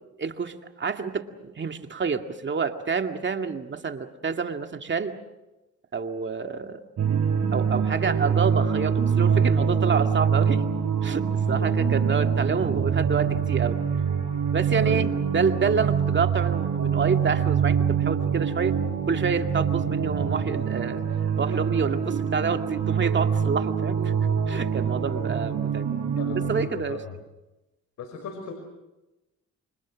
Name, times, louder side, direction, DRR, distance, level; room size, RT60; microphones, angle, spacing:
voice 1, 0.2-5.2 5.9-6.8 7.5-10.6 11.0-13.8 14.5-18.8 19.1-21.0 21.4-24.1 24.5-25.9 26.5-27.0, right 5 dB, 40° right, 6 dB, 2.1 m, -28 dB
sound 1, 7.0-26.7, right 7 dB, 60° right, 5.2 m, -25 dB
voice 2, 11.4-12.0 14.8-15.1 26.2-27.1 28.0-28.5, left 6 dB, 70° left, 4 dB, 5.3 m, -37 dB
29.0 x 25.0 x 6.4 m, 1.0 s
cardioid pair, 90°, 30 cm